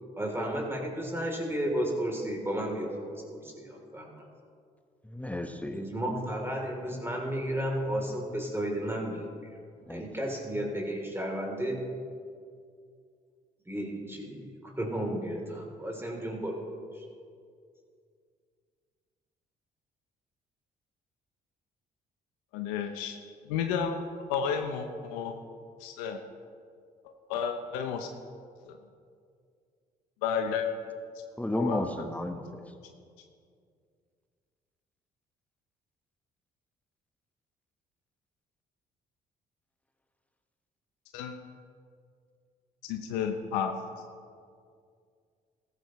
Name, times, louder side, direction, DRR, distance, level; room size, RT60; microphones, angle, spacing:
voice 1, 0.2-4.1 5.7-9.6 9.9-11.8 13.7-16.6 16.9-17.0, right 1 dB, 15° right, 0 dB, 3.4 m, -33 dB
voice 2, 5.0-5.9 9.9-10.1 31.4-32.6, left 1 dB, 10° left, 6 dB, 1.2 m, -33 dB
voice 3, 22.5-23.2 23.5-24.0 24.3-25.3 25.8-26.2 27.3-28.1 28.7-28.8 30.2-30.7 31.6-31.8 41.1-41.3 42.9-43.7, left 7 dB, 85° left, 5 dB, 0.8 m, -31 dB
15.0 x 13.5 x 3.2 m, 2.2 s
hypercardioid pair, 55°, 19 cm